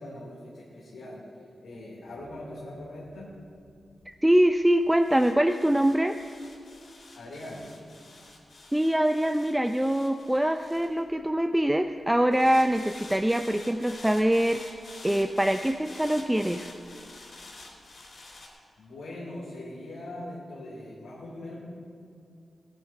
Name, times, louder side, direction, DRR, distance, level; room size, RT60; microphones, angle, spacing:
voice 1, 0.0-3.3 7.1-7.7 18.8-21.5, left 1 dB, 85° left, -5 dB, 2.8 m, -41 dB
sound 1, 2.2-11.6 12.3-18.5, left 2 dB, 60° left, 3.6 m, -48 dB
voice 2, 4.1-6.2 8.7-14.7 15.0-16.7, right 1 dB, 10° right, 7 dB, 0.5 m, -24 dB
18.5 x 9.6 x 5.5 m, 2.4 s
cardioid pair, 70°, 0 cm